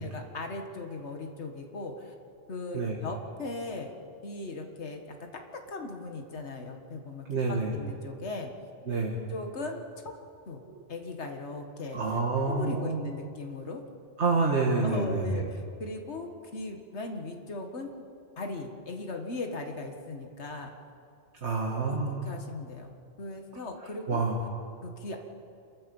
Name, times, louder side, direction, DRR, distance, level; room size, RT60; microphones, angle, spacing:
voice 1, 0.0-2.1 2.5-3.9 4.2-8.5 9.3-10.1 10.5-10.6 10.9-12.0 12.5-13.8 14.8-17.9 18.4-20.7 21.9-22.9 23.2-24.3 24.8-25.2, left 2 dB, 80° left, 3 dB, 1.9 m, -38 dB
voice 2, 7.3-7.7 8.9-9.2 11.9-13.1 14.2-15.3 21.4-22.3 24.1-24.4, right 3 dB, 85° right, -1 dB, 2.1 m, -28 dB
28.0 x 14.5 x 7.1 m, 2.5 s
omnidirectional pair, 1.1 m